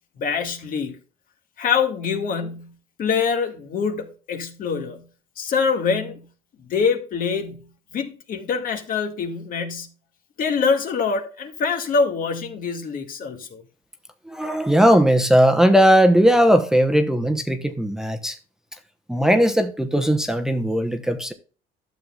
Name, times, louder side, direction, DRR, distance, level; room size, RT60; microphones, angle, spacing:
voice 1, 0.2-1.0 1.6-5.1 5.4-6.3 6.6-9.9 10.4-13.6, left 5 dB, 55° left, 1.9 m, -25 dB
voice 2, 14.3-18.4 19.1-21.3, equal, 5° right, 0.9 m, -18 dB
12.0 x 7.2 x 2.4 m
cardioid pair, 110°, 17 cm